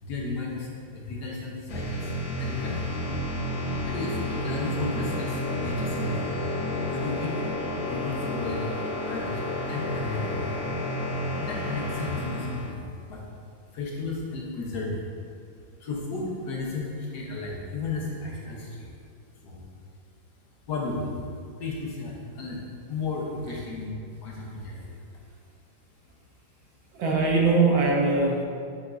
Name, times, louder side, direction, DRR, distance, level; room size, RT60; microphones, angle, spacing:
voice 1, 0.0-2.1 2.4-3.0 3.8-6.3 6.9-10.5 11.4-13.3 13.7-15.0 15.8-18.9 19.4-19.6 20.7-21.2 21.6-25.0, left 3 dB, 60° left, -3 dB, 1.4 m, -34 dB
sound 1, 1.7-12.7, left 1 dB, 85° left, 2.0 m, -30 dB
voice 2, 26.9-28.4, right 3 dB, 70° right, -1 dB, 1.4 m, -21 dB
6.9 x 6.1 x 2.5 m, 2.3 s
omnidirectional pair, 2.2 m